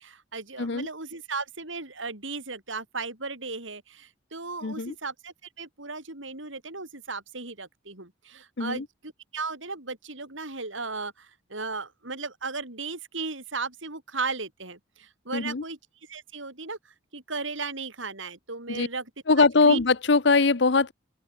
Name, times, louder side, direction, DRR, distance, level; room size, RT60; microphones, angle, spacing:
voice 1, 0.0-15.8 16.1-19.1 19.4-19.8, right 4 dB, 80° right, 6.2 m, -36 dB
voice 2, 4.6-4.9 8.6-8.8 15.3-15.6 18.7-18.9 19.3-20.9, left 4 dB, 65° left, 0.8 m, -21 dB
open air
head